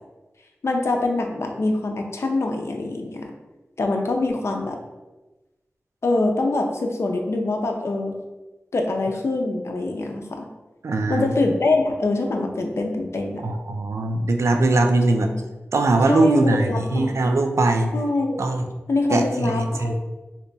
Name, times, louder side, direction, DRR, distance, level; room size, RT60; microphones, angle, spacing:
voice 1, 0.6-3.3 3.8-4.8 6.0-8.2 8.7-10.5 11.1-13.4 15.2-15.4 16.0-17.2 17.9-18.4 18.9-19.9, left 2 dB, 65° left, 3 dB, 0.5 m, -24 dB
voice 2, 10.8-11.3 13.4-15.3 15.7-17.9 18.4-18.6 19.1-19.9, right 2 dB, 75° right, 5 dB, 0.3 m, -21 dB
2.8 x 2.2 x 3.9 m, 1.1 s
wide cardioid pair, 70°, 5 cm